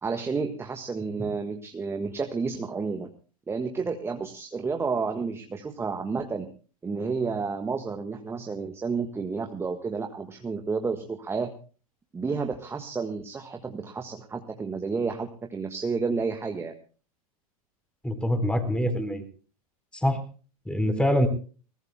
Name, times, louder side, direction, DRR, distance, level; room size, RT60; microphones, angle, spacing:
voice 1, 0.0-3.1 3.5-6.5 6.8-11.5 12.1-16.7, right 4 dB, 15° right, 5 dB, 1.5 m, -31 dB
voice 2, 18.0-19.2 19.9-20.2 20.7-21.3, equal, 5° left, 8 dB, 4.1 m, -24 dB
22.5 x 20.0 x 2.2 m, 0.38 s
figure-of-eight pair, 95°, 19 cm